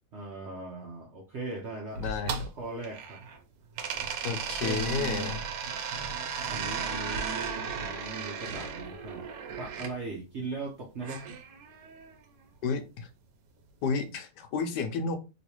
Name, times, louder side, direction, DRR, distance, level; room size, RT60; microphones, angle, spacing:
voice 1, 0.1-2.0 2.6-3.2 4.4-5.3 6.4-11.2, right 3 dB, 60° right, -1 dB, 0.7 m, -39 dB
voice 2, 2.0-2.5 4.2-5.4 12.6-13.1 13.8-15.2, left 5 dB, 75° left, 7 dB, 1.2 m, -31 dB
sound 1, 2.0-3.4 3.8-9.9 11.0-12.1, right 6 dB, 85° right, 1.3 m, -35 dB
3.0 x 3.0 x 2.9 m, 0.28 s
omnidirectional pair, 1.9 m